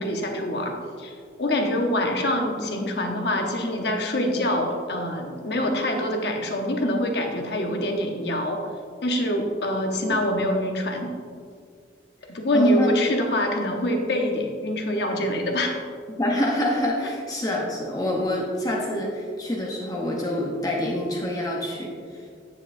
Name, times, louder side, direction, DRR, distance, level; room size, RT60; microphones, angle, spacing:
voice 1, 0.0-8.6 9.0-11.1 12.3-15.7, left 1 dB, 60° left, 3 dB, 0.9 m, -25 dB
voice 2, 12.5-12.9 16.2-21.9, left 1 dB, 20° left, -2 dB, 0.8 m, -26 dB
9.0 x 7.6 x 2.6 m, 2.1 s
head